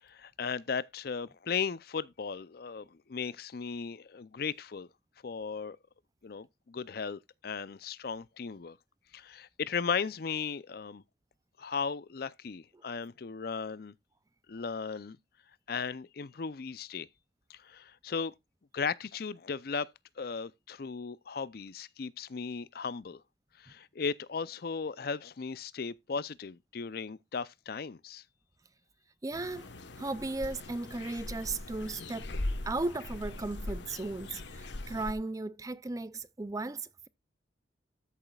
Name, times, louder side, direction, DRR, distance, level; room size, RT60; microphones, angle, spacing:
voice 1, 0.0-4.9 5.2-5.8 6.2-8.8 9.1-11.0 11.6-13.9 14.5-15.2 15.7-17.1 17.5-18.3 18.7-19.9 20.2-23.2 23.6-28.2, left 5 dB, 55° left, 0.5 m, -36 dB
voice 2, 29.2-29.7 30.0-32.3 32.6-37.1, right 2 dB, 20° right, 0.4 m, -36 dB
sound 1, 29.3-35.1, left 2 dB, 75° left, 1.2 m, -40 dB
13.0 x 7.1 x 2.3 m
head